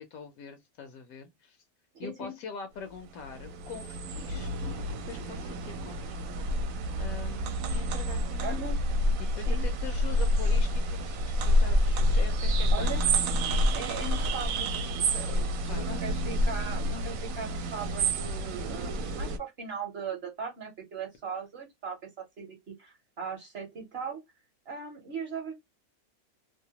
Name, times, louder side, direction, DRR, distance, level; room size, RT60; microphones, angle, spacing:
voice 1, 0.0-1.6 2.0-6.7 7.0-8.7 9.4-13.0 15.3-16.2, left 6 dB, 75° left, 1.0 m, -44 dB
voice 2, 1.9-2.3 8.4-8.8 9.5-9.7 12.7-13.0 13.7-24.2 24.7-25.5, right 5 dB, 50° right, 0.9 m, -39 dB
sound 1, 2.9-19.4, equal, 70° right, 1.0 m, -28 dB
2.8 x 2.1 x 2.7 m
omnidirectional pair, 1.6 m